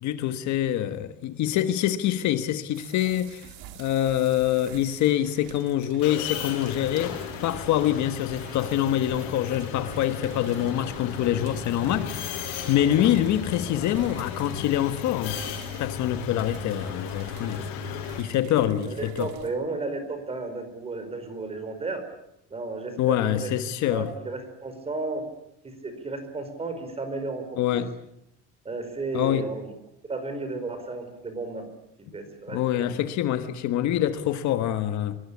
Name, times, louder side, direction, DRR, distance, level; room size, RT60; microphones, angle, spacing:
voice 1, 0.0-17.7 18.2-19.3 23.0-24.1 27.5-28.0 29.1-29.4 32.5-35.2, left 12 dB, 50° left, 1.5 m, -25 dB
sound 1, 2.7-19.6, right 9 dB, 80° right, 3.8 m, -47 dB
sound 2, 6.0-18.2, left 8 dB, 85° left, 6.9 m, -35 dB
voice 2, 18.6-22.0 22.5-23.5 23.9-25.2 25.6-27.8 28.6-29.7 30.1-31.7 32.0-33.0, right 3 dB, 15° right, 4.9 m, -34 dB
25.0 x 22.5 x 8.5 m
cardioid pair, 170°, 36 cm